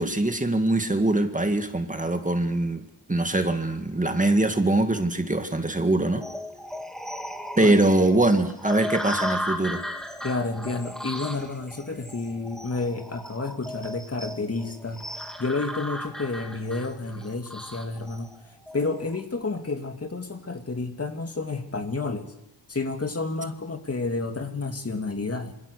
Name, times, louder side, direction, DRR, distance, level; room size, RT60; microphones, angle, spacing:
voice 1, 0.0-2.8 3.1-6.2 7.6-9.8, right 2 dB, 20° right, 2.0 m, -23 dB
sound 1, 6.2-19.2, equal, ahead, 2.5 m, -36 dB
voice 2, 10.2-15.0 15.4-18.3 18.7-22.3 22.7-25.6, left 3 dB, 35° left, 2.6 m, -30 dB
27.0 x 27.0 x 6.7 m
wide cardioid pair, 135°, 42 cm